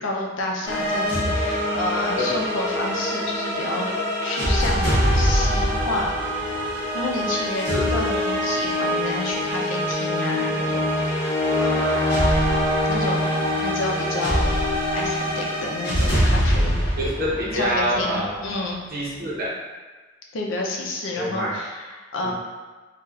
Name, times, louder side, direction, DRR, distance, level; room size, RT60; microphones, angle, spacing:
voice 1, 0.0-3.9 4.2-6.1 6.4-12.2 12.9-14.5 14.9-17.0 17.5-18.8 20.3-22.3, left 2 dB, 80° left, -1 dB, 0.6 m, -30 dB
sound 1, 0.6-18.3, equal, 25° left, 1.3 m, -23 dB
voice 2, 7.7-8.0 17.0-18.3 18.9-19.5 21.2-21.5 22.2-22.3, equal, 50° right, -6 dB, 0.9 m, -26 dB
4.2 x 2.4 x 2.4 m, 1.4 s
head